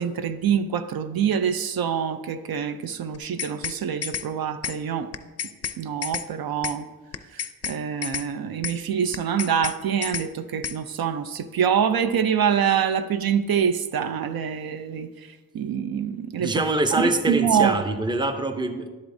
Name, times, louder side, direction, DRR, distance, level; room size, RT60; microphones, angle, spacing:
voice 1, 0.0-5.1 5.8-6.9 7.3-15.1 15.5-16.5 17.0-17.7, right 8 dB, 75° right, 0.5 m, -25 dB
sound 1, 3.1-3.8 4.0-4.3 4.6-4.8 5.1-5.8 6.0-6.3 6.6-6.8 7.1-7.8 8.0-8.3 8.6-8.8 9.1-9.8 10.0-10.3 10.6-10.8, left 8 dB, 45° left, 0.4 m, -30 dB
voice 2, 16.4-18.9, right 2 dB, 15° right, 0.5 m, -24 dB
11.0 x 7.9 x 2.6 m
wide cardioid pair, 115°, 36 cm